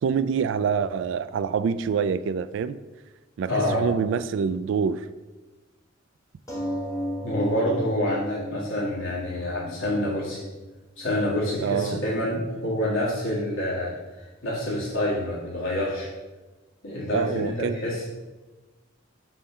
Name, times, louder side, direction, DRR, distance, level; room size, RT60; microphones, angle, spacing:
voice 1, 0.0-2.8 3.4-5.1 11.6-12.0 17.1-17.8, right 6 dB, 65° right, 14 dB, 0.3 m, -26 dB
voice 2, 3.5-3.9 7.2-10.4 11.0-13.9 14.4-16.1 16.8-18.0, left 1 dB, 85° left, -7 dB, 1.7 m, -27 dB
sound 1, 6.5-11.5 12.2-12.3 12.6-12.7, equal, 15° left, 1.2 m, -35 dB
5.5 x 4.2 x 5.6 m, 1.2 s
head